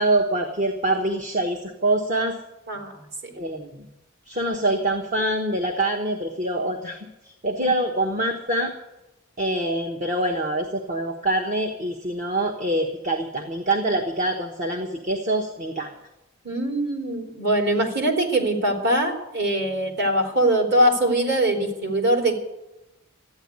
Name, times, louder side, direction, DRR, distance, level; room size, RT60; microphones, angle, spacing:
voice 1, 0.0-2.4 3.4-3.8 4.3-7.0 7.2-8.7 9.4-15.9, right 1 dB, 35° right, 3 dB, 1.2 m, -25 dB
voice 2, 16.4-22.4, right 1 dB, 50° right, 2 dB, 3.2 m, -22 dB
13.5 x 9.6 x 9.6 m, 0.94 s
head